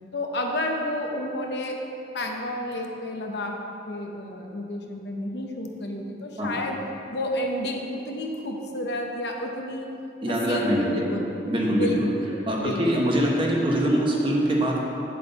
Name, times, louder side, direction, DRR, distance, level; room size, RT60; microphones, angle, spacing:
voice 1, 0.1-1.8 2.1-3.6 3.9-6.8 7.1-9.9 10.3-12.3 12.6-13.0, left 1 dB, 75° left, 2 dB, 0.9 m, -31 dB
voice 2, 10.2-11.0 11.5-12.1 12.5-14.8, right 1 dB, 30° right, -2 dB, 1.1 m, -23 dB
8.5 x 7.5 x 4.1 m, 2.8 s
head